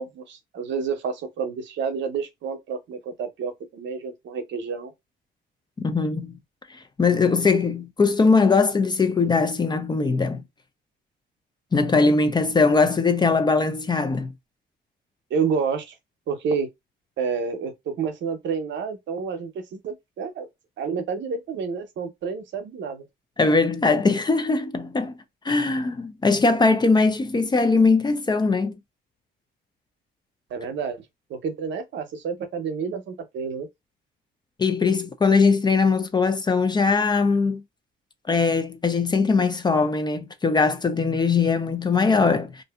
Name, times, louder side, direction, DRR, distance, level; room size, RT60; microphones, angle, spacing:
voice 1, 0.0-4.9 15.3-15.9 16.3-16.7 17.2-17.7 18.0-20.5 20.8-23.0 30.5-31.0 31.3-33.7, right 5 dB, 70° right, 0.7 m, -29 dB
voice 2, 5.8-6.4 7.0-10.4 11.7-14.3 23.4-25.1 25.4-28.8 34.6-37.6 38.3-42.6, left 4 dB, 20° left, 0.4 m, -21 dB
2.6 x 2.5 x 2.2 m
cardioid pair, 90°, 20 cm